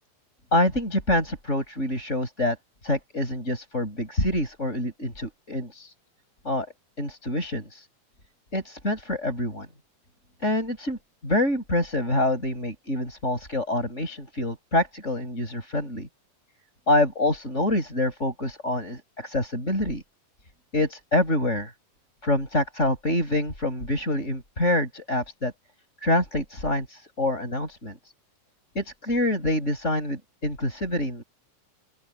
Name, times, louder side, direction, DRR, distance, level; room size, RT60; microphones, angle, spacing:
voice 1, 0.5-2.6 2.8-5.9 6.4-6.7 7.0-7.9 8.5-9.7 10.4-16.1 16.9-20.0 20.7-21.7 22.2-25.5 26.0-28.0 28.7-31.2, left 1 dB, 20° left, 8.1 m, -26 dB
open air
omnidirectional pair, 3.7 m